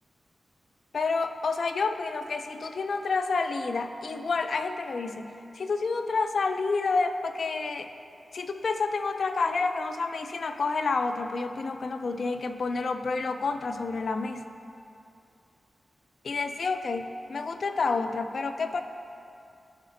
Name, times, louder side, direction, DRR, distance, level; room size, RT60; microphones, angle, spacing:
voice 1, 0.9-7.9 8.3-14.5 16.2-18.8, left 4 dB, 60° left, 8 dB, 0.3 m, -29 dB
12.5 x 4.2 x 2.5 m, 2.6 s
wide cardioid pair, 175°, 0 cm